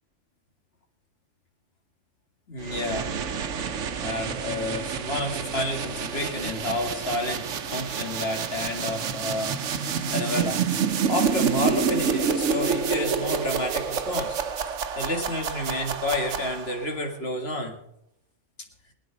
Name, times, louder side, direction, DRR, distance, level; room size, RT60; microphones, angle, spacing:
voice 1, 2.5-3.1 4.0-10.7 11.1-14.4 15.0-17.8, left 1 dB, 55° left, 3 dB, 2.4 m, -30 dB
sound 1, 2.6-16.9, right 6 dB, 85° right, 1.2 m, -28 dB
22.0 x 9.2 x 5.1 m, 0.73 s
omnidirectional pair, 1.2 m